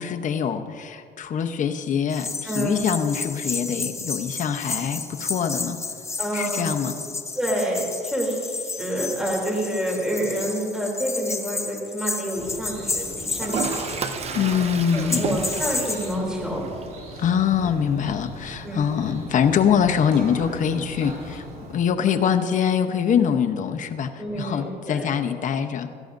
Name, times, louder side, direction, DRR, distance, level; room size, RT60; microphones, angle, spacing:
voice 1, 0.0-5.8 6.3-6.9 14.3-15.4 17.2-21.4 21.7-25.9, left 7 dB, 50° left, 7 dB, 0.9 m, -24 dB
sound 1, 2.1-14.4 15.1-16.1, left 3 dB, 15° left, 0.7 m, -31 dB
voice 2, 2.4-2.9 6.2-6.7 7.3-13.9 14.9-16.6 18.6-18.8 24.2-25.1, right 1 dB, 5° right, -3 dB, 3.1 m, -28 dB
sound 2, 12.3-21.8, right 1 dB, 60° right, 3.0 m, -40 dB
Toilet flush, 13.4-21.4, right 5 dB, 40° right, 0.8 m, -35 dB
17.0 x 13.5 x 2.6 m, 2.3 s
cardioid pair, 110°, 17 cm